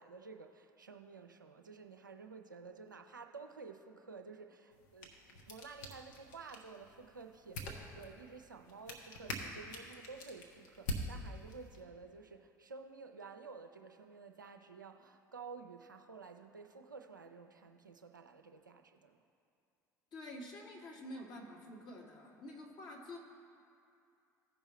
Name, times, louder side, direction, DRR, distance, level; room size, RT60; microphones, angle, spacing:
voice 1, 0.0-19.2, right 4 dB, 90° right, 5 dB, 0.4 m, -52 dB
sound 1, 4.7-11.8, left 1 dB, 70° left, 1.1 m, -46 dB
voice 2, 20.1-23.2, left 1 dB, 45° left, -1 dB, 1.7 m, -48 dB
15.5 x 5.4 x 3.1 m, 2.5 s
figure-of-eight pair, 60°, 10 cm